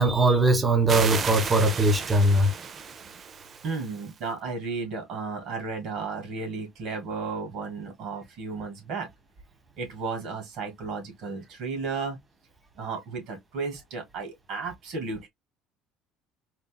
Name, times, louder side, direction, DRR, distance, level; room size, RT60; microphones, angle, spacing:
voice 1, 0.0-2.5, right 2 dB, 20° right, 1.0 m, -21 dB
sound 1, 0.9-4.2, right 6 dB, 35° right, 0.5 m, -33 dB
voice 2, 3.6-9.1 9.8-12.2 12.8-15.3, right 4 dB, 65° right, 2.2 m, -34 dB
4.3 x 2.6 x 2.2 m
cardioid pair, 110°, 0 cm